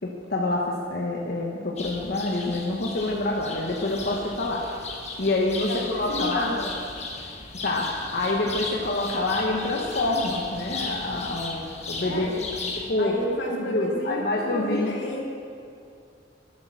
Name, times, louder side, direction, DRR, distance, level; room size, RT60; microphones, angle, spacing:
voice 1, 0.0-4.7 5.2-6.6 7.6-12.3 12.7-13.2 13.5-15.1, left 2 dB, 55° left, -2 dB, 1.1 m, -27 dB
sound 1, 1.8-12.9, left 3 dB, 35° left, 1.3 m, -36 dB
voice 2, 5.7-6.7 12.0-12.4 13.0-15.3, left 1 dB, 85° left, -1 dB, 2.2 m, -31 dB
12.0 x 8.7 x 6.2 m, 2.5 s
head